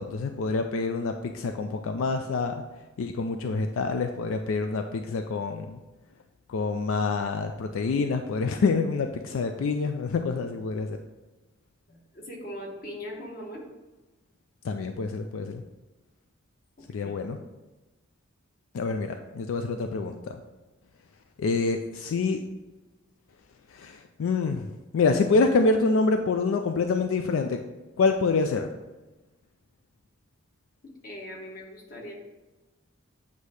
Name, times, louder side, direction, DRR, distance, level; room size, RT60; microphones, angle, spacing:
voice 1, 0.0-2.6 3.0-5.8 6.5-11.0 14.6-15.6 16.9-17.4 18.7-20.4 21.4-22.4 23.7-27.6 28.0-28.7, left 4 dB, 80° left, 6 dB, 0.4 m, -26 dB
voice 2, 11.9-13.6 17.0-17.2 30.8-32.1, equal, 45° left, -1 dB, 1.3 m, -40 dB
8.1 x 2.8 x 4.7 m, 1.1 s
head